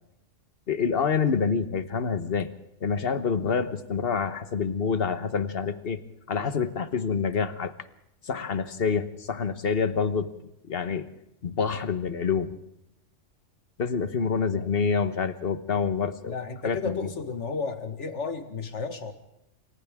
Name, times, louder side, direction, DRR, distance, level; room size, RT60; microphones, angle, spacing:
voice 1, 0.7-2.5 2.8-6.0 6.3-7.7 8.2-10.3 10.7-11.1 11.4-12.5 13.8-16.3 16.6-17.1, left 5 dB, 50° left, 11 dB, 1.4 m, -27 dB
voice 2, 16.2-19.1, left 4 dB, 65° left, 8 dB, 2.0 m, -33 dB
28.0 x 26.0 x 3.7 m, 0.81 s
omnidirectional pair, 1.3 m